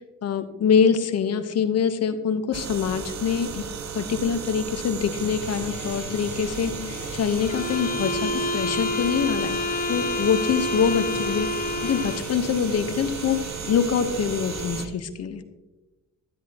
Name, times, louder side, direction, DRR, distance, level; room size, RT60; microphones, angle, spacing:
voice 1, 0.2-3.6 3.9-9.6 9.9-13.4 13.7-15.4, left 7 dB, 55° left, 10 dB, 1.1 m, -24 dB
sound 1, 2.5-14.9, right 6 dB, 65° right, 1.1 m, -35 dB
sound 2, 5.1-14.9, left 4 dB, 90° left, 1.8 m, -41 dB
sound 3, 7.4-12.4, left 2 dB, 30° left, 0.8 m, -28 dB
12.0 x 10.5 x 2.9 m, 1.1 s
cardioid pair, 90°, 30 cm